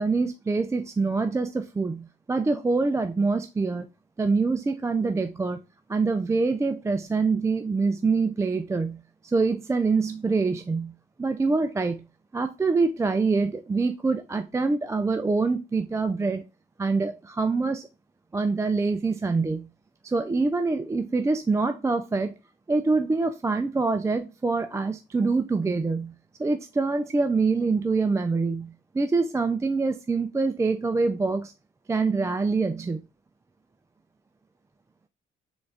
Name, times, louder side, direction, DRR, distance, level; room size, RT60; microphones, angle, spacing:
voice 1, 0.0-3.9 4.2-5.6 5.9-10.9 11.2-12.0 12.3-16.4 16.8-17.9 18.3-19.7 20.0-22.4 22.7-26.1 26.4-31.5 31.9-33.0, right 4 dB, 15° right, 0.3 m, -25 dB
3.9 x 3.5 x 3.3 m
cardioid pair, 90°, 20 cm